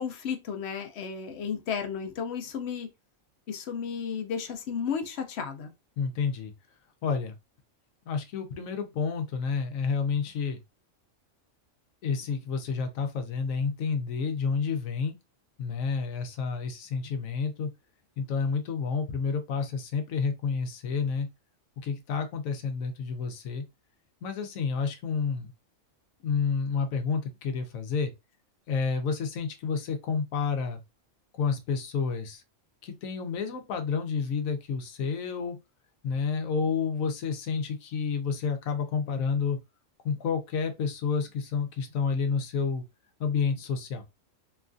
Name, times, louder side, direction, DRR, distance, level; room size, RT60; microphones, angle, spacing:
voice 1, 0.0-2.9 3.5-5.7, left 7 dB, 65° left, 0.7 m, -33 dB
voice 2, 6.0-6.5 7.0-7.3 8.0-10.6 12.0-15.1 15.6-17.7 18.2-21.3 21.8-23.6 24.2-25.5 26.2-28.1 28.7-30.8 31.3-32.4 32.8-35.6 36.0-39.6 40.0-42.8 43.2-44.0, left 5 dB, 85° left, 1.1 m, -30 dB
3.1 x 2.3 x 2.4 m
omnidirectional pair, 1.4 m